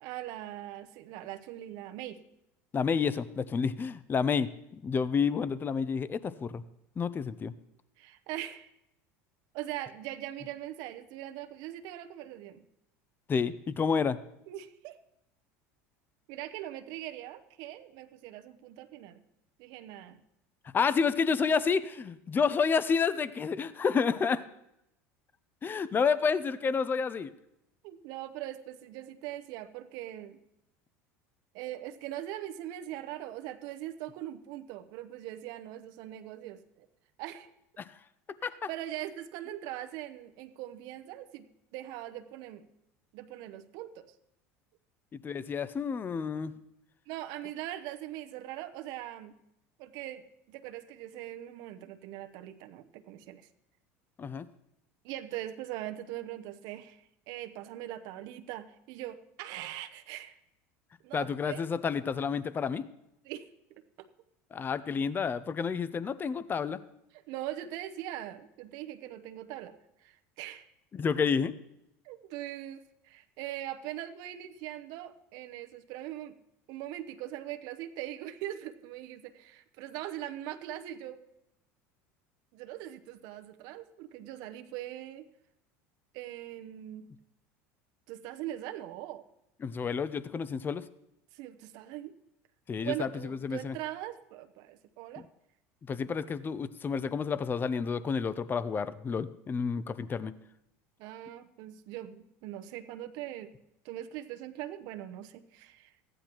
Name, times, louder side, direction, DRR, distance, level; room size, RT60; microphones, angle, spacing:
voice 1, 0.0-2.2 8.0-8.7 9.5-12.6 14.5-15.0 16.3-19.2 19.6-20.2 27.8-30.4 31.5-36.9 37.2-37.5 38.7-41.5 41.7-42.7 43.1-44.1 47.1-49.3 49.8-53.5 55.0-60.4 61.0-61.6 63.2-64.1 67.3-69.7 70.0-70.7 72.0-76.3 76.7-81.2 82.5-85.2 86.1-87.1 88.1-89.2 91.3-92.1 92.8-95.2 101.0-103.5 103.8-106.1, right 13 dB, 65° right, 9 dB, 0.7 m, -41 dB
voice 2, 2.7-4.5 4.8-6.6 7.0-7.5 13.3-14.2 20.6-24.4 25.6-27.3 37.8-37.9 38.4-38.7 45.1-46.5 54.2-54.5 61.1-62.8 64.5-66.8 70.9-71.5 89.6-90.8 92.7-93.7 95.8-100.3, left 6 dB, 25° left, 15 dB, 0.5 m, -30 dB
14.5 x 10.0 x 3.0 m, 0.82 s
hypercardioid pair, 90°, 8 cm